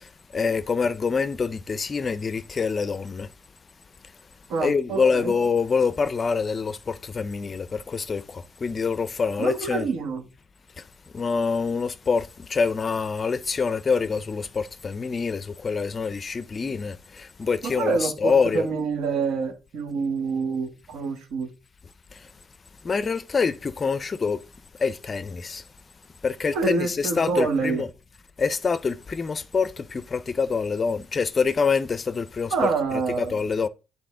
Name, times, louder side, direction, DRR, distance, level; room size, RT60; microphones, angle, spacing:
voice 1, 0.0-3.3 4.6-9.9 10.8-10.9 11.1-18.7 22.1-22.3 22.8-24.4 24.8-25.6 26.2-27.9 28.4-33.7, left 5 dB, 30° left, 0.5 m, -26 dB
voice 2, 4.5-5.3 9.4-10.2 17.6-21.5 26.5-27.8 32.5-33.3, right 4 dB, 70° right, 1.7 m, -27 dB
9.0 x 4.1 x 3.7 m
cardioid pair, 100°, 0 cm